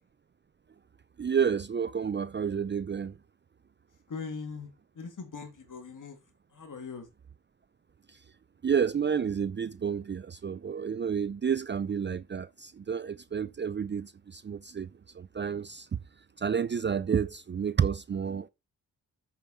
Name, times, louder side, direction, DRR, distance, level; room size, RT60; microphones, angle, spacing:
voice 1, 1.2-3.1 8.6-14.9 15.2-15.9 16.4-18.5, right 7 dB, 30° right, 0.5 m, -30 dB
voice 2, 4.1-4.7 4.9-6.2 6.5-7.1, left 5 dB, 50° left, 3.0 m, -40 dB
8.7 x 5.8 x 4.3 m
supercardioid pair, 45°, 39 cm